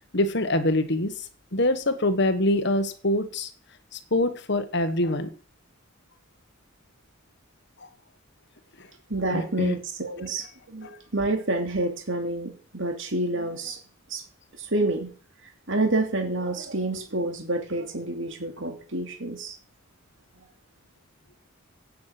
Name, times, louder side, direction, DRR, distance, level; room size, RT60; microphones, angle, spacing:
voice 1, 0.1-3.5 3.9-5.3 7.8-7.9 8.8-8.9 9.3-9.8 10.8-11.0, left 1 dB, 55° left, 10 dB, 1.5 m, -25 dB
voice 2, 9.1-13.8 14.1-14.2 14.6-15.1 15.7-19.5, right 2 dB, 60° right, 4 dB, 2.8 m, -28 dB
16.0 x 8.7 x 6.1 m, 0.41 s
head